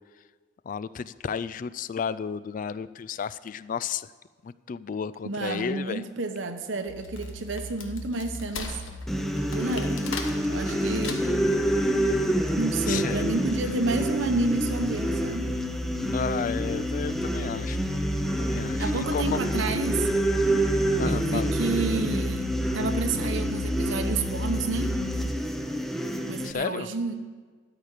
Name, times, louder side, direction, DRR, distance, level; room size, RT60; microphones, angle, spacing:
voice 1, 0.6-4.1 4.4-6.0 12.9-13.3 16.1-18.0 18.4-19.4 21.0-21.5 26.4-26.9, left 6 dB, 45° left, 16 dB, 0.3 m, -32 dB
voice 2, 5.2-8.8 9.5-11.3 12.6-15.5 18.8-20.1 21.1-25.0 26.2-27.1, right 3 dB, 75° right, 7 dB, 0.9 m, -30 dB
Wood, 6.8-11.6, left 5 dB, 85° left, 1.2 m, -39 dB
sound 1, 6.9-25.3, equal, 70° left, 1.4 m, -34 dB
sound 2, 9.1-26.5, equal, ahead, 0.6 m, -28 dB
13.0 x 5.0 x 9.0 m, 1.5 s
head